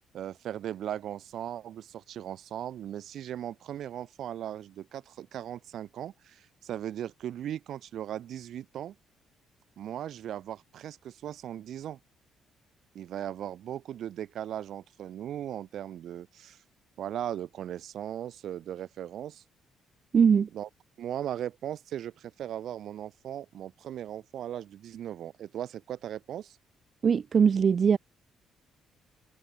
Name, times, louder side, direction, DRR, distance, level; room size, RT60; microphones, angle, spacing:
voice 1, 0.1-9.0 9.8-12.0 12.9-16.6 17.0-19.4 20.5-20.7 21.0-26.6, right 11 dB, 60° right, 4.1 m, -38 dB
voice 2, 20.1-20.5 27.0-28.0, right 6 dB, 35° right, 1.3 m, -21 dB
cardioid pair, 145°, 0 cm